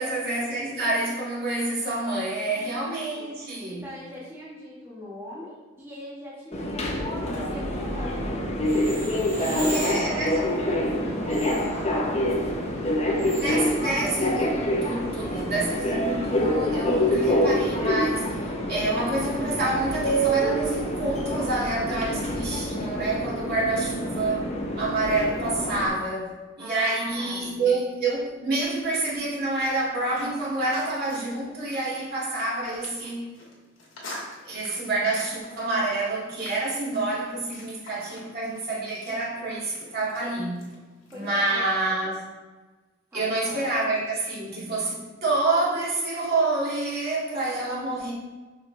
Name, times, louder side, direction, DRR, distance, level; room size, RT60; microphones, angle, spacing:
voice 1, 0.0-3.8 9.7-10.3 13.4-24.5 24.8-26.3 26.6-33.3 34.4-40.6 41.1-42.2 43.1-48.1, right 2 dB, 55° right, -6 dB, 2.1 m, -28 dB
voice 2, 2.5-3.3 3.6-8.2 9.5-14.0 26.6-27.8 41.1-41.6 43.1-43.6, left 1 dB, 15° right, -7 dB, 1.3 m, -41 dB
Subway metro underground, 6.5-25.9, equal, 35° left, 0.9 m, -26 dB
sound 1, 8.6-15.1, right 1 dB, 30° right, 2.2 m, -40 dB
sound 2, 29.6-41.3, left 1 dB, 75° left, 2.2 m, -47 dB
6.4 x 6.0 x 3.3 m, 1.2 s
head